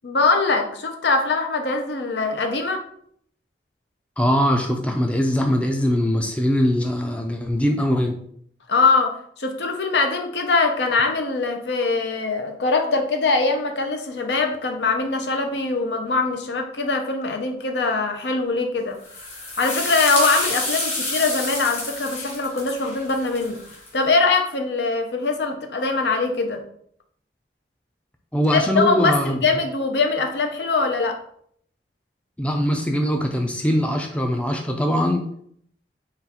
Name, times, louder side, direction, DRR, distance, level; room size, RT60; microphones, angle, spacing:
voice 1, 0.0-2.8 8.7-19.0 19.6-23.6 23.9-26.6 28.5-31.2, left 3 dB, 80° left, 4 dB, 0.6 m, -22 dB
voice 2, 4.2-8.1 28.3-29.4 32.4-35.2, equal, 5° left, 3 dB, 0.4 m, -21 dB
sound 1, 19.0-23.9, left 2 dB, 35° left, 1.4 m, -29 dB
3.8 x 2.4 x 4.2 m, 0.65 s
head